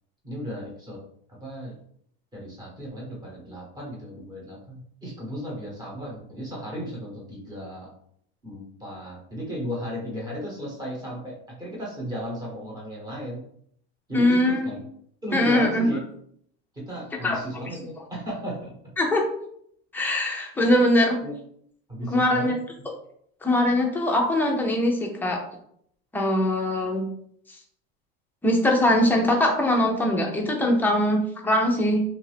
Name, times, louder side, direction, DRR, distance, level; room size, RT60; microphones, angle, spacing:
voice 1, 0.2-1.0 1.3-1.8 2.3-7.9 8.4-13.4 14.1-14.8 15.2-16.0 16.7-18.7 21.2-21.3 21.9-22.5, equal, 10° right, -4 dB, 1.1 m, -35 dB
voice 2, 14.1-14.8 15.3-15.9 17.2-17.4 19.0-19.2 19.9-21.2 22.0-22.5 23.4-25.4 26.1-27.1 28.4-32.0, left 1 dB, 5° left, 0 dB, 0.4 m, -22 dB
2.8 x 2.4 x 3.3 m, 0.67 s
supercardioid pair, 140°, 32 cm